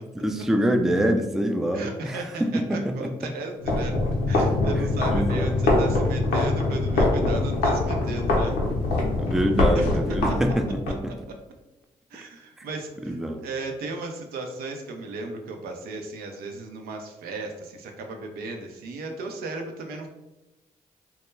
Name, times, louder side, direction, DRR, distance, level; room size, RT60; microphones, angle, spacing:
voice 1, 0.1-3.1 5.1-5.6 9.2-11.1 13.1-13.4, equal, ahead, 5 dB, 0.3 m, -25 dB
voice 2, 1.7-3.9 4.3-8.6 9.7-9.9 12.1-20.1, right 3 dB, 75° right, 3 dB, 0.4 m, -35 dB
sound 1, 3.6-10.9, left 2 dB, 85° left, 0.5 m, -23 dB
2.2 x 2.1 x 3.1 m, 0.98 s
hypercardioid pair, 45°, 16 cm